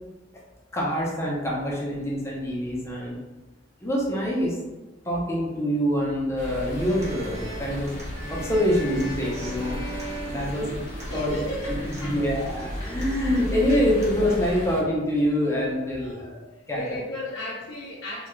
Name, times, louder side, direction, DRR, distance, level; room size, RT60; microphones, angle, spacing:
voice 1, 0.7-3.2 3.8-4.6 5.1-7.9 8.3-9.8 10.3-10.7 11.1-11.3 12.0-16.4 16.7-16.8, equal, 15° left, -4 dB, 0.5 m, -25 dB
sound 1, 6.4-14.8, equal, 40° left, 0.9 m, -34 dB
Human voice / Acoustic guitar, 6.5-14.5, equal, 35° right, 0.6 m, -44 dB
sound 2, 6.7-11.3, right 1 dB, 80° right, 0.5 m, -39 dB
voice 2, 10.4-10.8 11.1-12.3 12.5-13.3 13.7-13.8 16.0-16.4 16.7-18.3, left 1 dB, 85° left, -6 dB, 0.5 m, -36 dB
2.3 x 2.0 x 3.0 m, 1.1 s
head